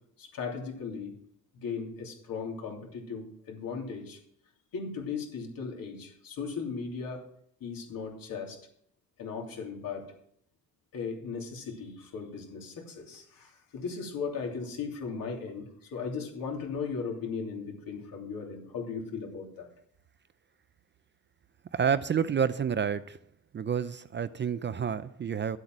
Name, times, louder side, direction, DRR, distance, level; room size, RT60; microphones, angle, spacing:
voice 1, 0.2-1.1 1.5-4.2 4.7-7.2 7.6-8.6 9.2-10.1 10.9-19.7, left 5 dB, 70° left, 1 dB, 3.2 m, -37 dB
voice 2, 21.7-23.2 23.5-25.6, right 7 dB, 30° right, 14 dB, 0.5 m, -29 dB
11.5 x 8.0 x 6.2 m, 0.69 s
cardioid pair, 125°, 36 cm